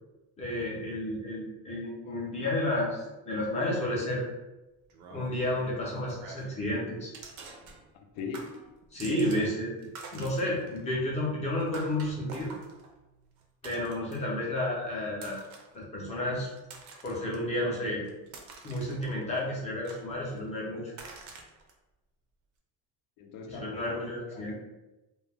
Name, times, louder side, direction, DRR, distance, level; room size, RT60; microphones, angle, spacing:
voice 1, 0.4-4.2 5.1-7.1 8.9-9.7 10.1-12.5 13.6-15.4 15.7-16.5 17.0-18.1 18.6-20.9 23.5-24.6, left 1 dB, 20° left, -5 dB, 0.5 m, -31 dB
sound 1, 4.9-6.6 7.1-8.1 8.3-9.5 9.8-14.4 15.1-15.8 16.3-17.4 17.8-19.4 19.8-20.5 20.9-21.7, right 4 dB, 50° right, 0.4 m, -48 dB
voice 2, 8.1-8.7 9.0-9.5 23.2-24.6, left 4 dB, 75° left, 3 dB, 0.6 m, -40 dB
2.2 x 2.0 x 3.2 m, 1.0 s
cardioid pair, 175°, 38 cm